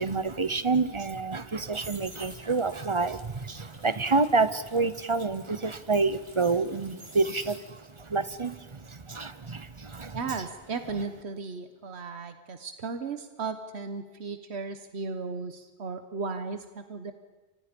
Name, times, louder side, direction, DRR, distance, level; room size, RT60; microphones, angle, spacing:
voice 1, 0.0-10.2, right 3 dB, 30° right, 14 dB, 0.8 m, -28 dB
sound 1, 1.7-8.0 8.4-11.3 11.5-11.9, right 2 dB, 70° right, 3.9 m, -50 dB
voice 2, 10.1-17.1, right 4 dB, 90° right, 8 dB, 1.4 m, -35 dB
30.0 x 25.5 x 5.3 m, 1.2 s
omnidirectional pair, 1.1 m